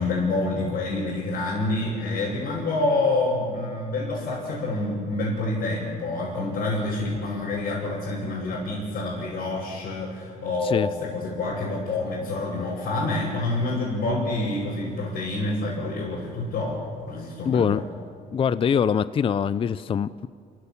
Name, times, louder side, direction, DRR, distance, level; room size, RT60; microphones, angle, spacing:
voice 1, 0.0-17.8, left 2 dB, 65° left, -6 dB, 7.1 m, -27 dB
voice 2, 17.4-17.8 18.3-20.3, left 7 dB, 30° left, 16 dB, 0.5 m, -23 dB
28.5 x 16.5 x 7.2 m, 2.2 s
cardioid pair, 110°, 17 cm